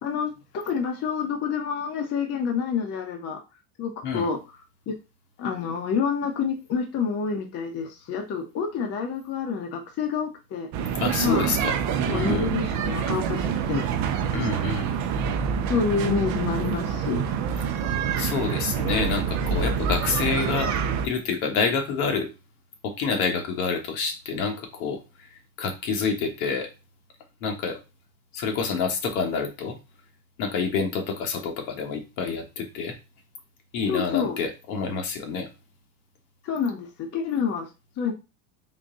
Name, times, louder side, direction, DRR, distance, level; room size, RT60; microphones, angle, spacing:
voice 1, 0.0-3.4 3.8-4.4 4.9-5.0 5.4-10.7 11.2-11.5 12.1-13.8 15.7-17.2 33.9-34.4 36.4-37.7 38.0-38.1, left 6 dB, 35° left, 2 dB, 0.8 m, -28 dB
sound 1, 10.7-21.1, right 7 dB, 40° right, 0.5 m, -26 dB
voice 2, 10.9-11.8 12.1-12.5 14.3-14.9 18.2-20.7 21.0-22.3 22.8-25.0 25.6-26.7 27.4-27.8 28.3-29.8 30.4-32.9 33.7-35.5, left 5 dB, 70° left, 3 dB, 1.3 m, -27 dB
3.9 x 2.2 x 3.7 m, 0.28 s
supercardioid pair, 125°, 45 cm